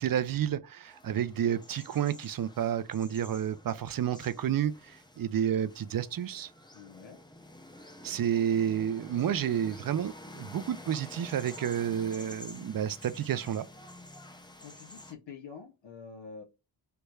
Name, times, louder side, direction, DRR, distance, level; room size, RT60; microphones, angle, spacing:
voice 1, 0.0-6.5 8.0-13.7, right 9 dB, 50° right, 0.4 m, -30 dB
sound 1, 0.9-15.1, left 1 dB, 10° left, 0.6 m, -49 dB
voice 2, 6.7-7.2 9.1-9.6 14.6-16.4, left 5 dB, 75° left, 0.8 m, -47 dB
3.3 x 3.0 x 2.2 m
cardioid pair, 50°, 44 cm